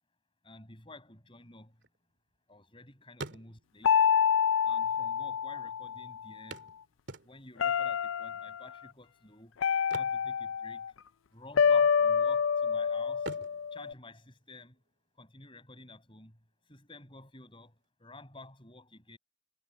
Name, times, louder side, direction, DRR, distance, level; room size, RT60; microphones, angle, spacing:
voice 1, 0.4-1.7 2.5-3.9 4.6-6.6 7.2-9.5 9.9-10.8 11.3-13.3 13.7-14.8 15.2-16.4 16.7-19.2, left 2 dB, 25° left, 6.4 m, -52 dB
sound 1, 1.5-2.8 3.1-3.9 4.8-4.9 5.2-5.3 6.5-7.7 9.7-11.1 11.3-11.6 12.1-12.7 13.2-14.9 16.9-17.0 17.4-17.5, right 2 dB, 60° right, 2.9 m, -46 dB
sound 2, 3.8-6.2 7.6-8.6 9.6-10.9 11.6-13.9, left 7 dB, 85° left, 0.4 m, -27 dB
head